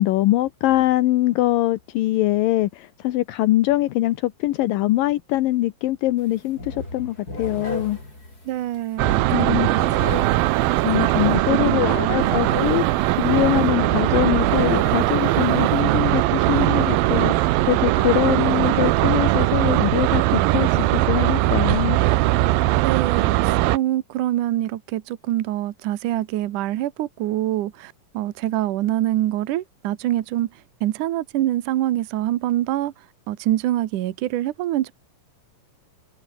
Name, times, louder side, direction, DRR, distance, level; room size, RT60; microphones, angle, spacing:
voice 1, 0.0-8.0 9.3-9.7 10.8-22.0, left 16 dB, 80° left, 2.6 m, -23 dB
sound 1, 6.2-6.3 6.6-15.8, left 2 dB, 25° left, 8.4 m, -36 dB
voice 2, 8.5-9.9 11.5-12.2 22.8-34.9, right 14 dB, 70° right, 2.5 m, -25 dB
sound 2, 9.0-23.8, right 17 dB, 90° right, 2.6 m, -20 dB
omnidirectional pair, 4.1 m